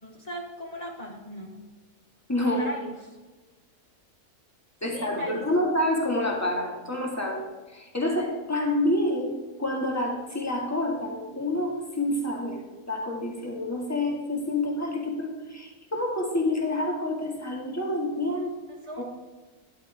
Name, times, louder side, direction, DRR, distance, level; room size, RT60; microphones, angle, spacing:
voice 1, 0.0-1.7 2.6-3.2 4.9-5.7 18.7-19.0, equal, 25° left, 1 dB, 1.4 m, -38 dB
voice 2, 2.3-2.7 4.8-7.4 7.7-9.3 9.6-12.6 12.9-18.5 19.0-19.1, left 1 dB, 10° left, -1 dB, 2.1 m, -28 dB
13.0 x 11.5 x 3.6 m, 1.3 s
omnidirectional pair, 1.6 m